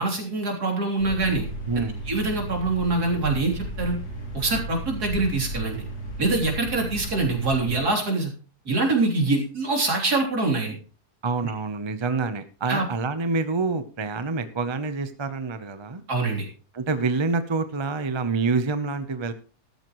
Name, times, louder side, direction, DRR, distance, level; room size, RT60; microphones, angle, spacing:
voice 1, 0.0-1.5 2.1-4.0 4.3-5.8 6.2-8.3 8.7-10.8 12.0-12.1 12.7-12.8 16.1-16.5, right 3 dB, 75° right, 1 dB, 3.9 m, -24 dB
sound 1, 1.0-7.8, right 1 dB, 85° left, 3.7 m, -34 dB
voice 2, 1.7-2.0 11.2-16.0 16.7-19.3, right 4 dB, 25° right, 10 dB, 0.7 m, -27 dB
13.5 x 13.5 x 3.2 m, 0.38 s
omnidirectional pair, 1.7 m